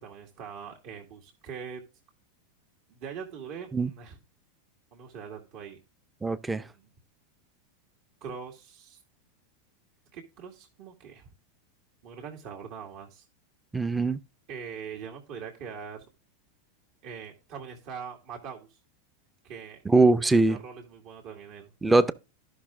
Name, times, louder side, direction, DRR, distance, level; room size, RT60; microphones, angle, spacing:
voice 1, 0.0-1.8 2.9-4.2 4.9-5.8 6.5-6.9 8.2-9.0 10.1-11.2 12.0-13.3 14.5-16.0 17.0-18.8 19.4-19.8 20.2-21.7, right 6 dB, 55° right, 2.0 m, -42 dB
voice 2, 6.2-6.6 13.7-14.2 19.9-20.6 21.8-22.1, right 3 dB, 10° right, 0.5 m, -22 dB
11.5 x 5.8 x 3.7 m
hypercardioid pair, 115°, 0 cm